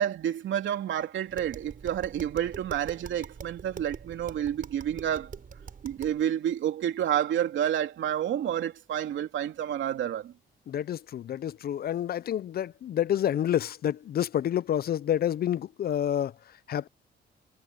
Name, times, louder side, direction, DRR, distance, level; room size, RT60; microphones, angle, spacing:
voice 1, 0.0-5.3 5.8-10.3, right 10 dB, 70° right, 3.0 m, -29 dB
Tap, 1.3-6.2, right 6 dB, 45° right, 5.9 m, -44 dB
voice 2, 10.7-16.9, left 10 dB, 50° left, 0.5 m, -29 dB
cardioid pair, 90°, 20 cm